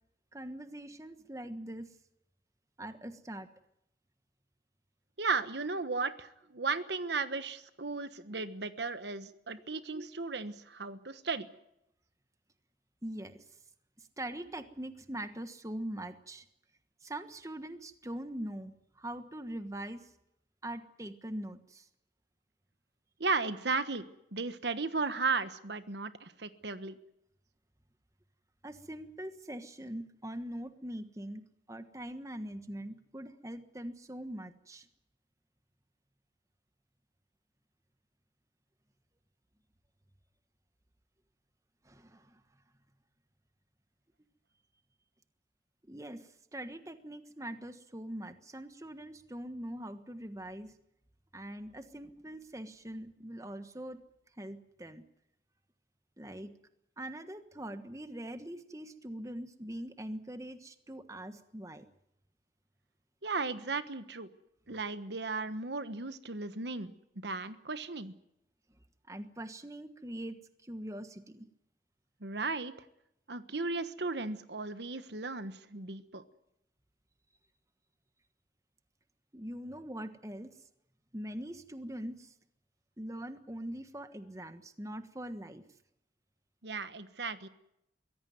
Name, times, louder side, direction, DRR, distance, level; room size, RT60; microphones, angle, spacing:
voice 1, 0.3-2.0 2.8-3.5 13.0-13.4 14.0-16.5 17.0-20.1 20.6-21.9 28.6-31.4 31.7-34.9 41.8-42.4 45.9-50.7 51.3-54.0 54.4-55.0 56.2-56.6 57.0-61.8 69.1-71.5 79.3-80.6 81.1-82.3 83.0-85.6, right 1 dB, 15° right, 9 dB, 1.3 m, -42 dB
voice 2, 5.2-11.5 23.2-27.0 63.2-64.3 64.7-66.9 67.2-68.1 72.2-72.7 73.3-76.2 86.6-87.5, right 4 dB, 65° right, 11 dB, 1.3 m, -35 dB
23.5 x 16.5 x 9.4 m, 0.81 s
head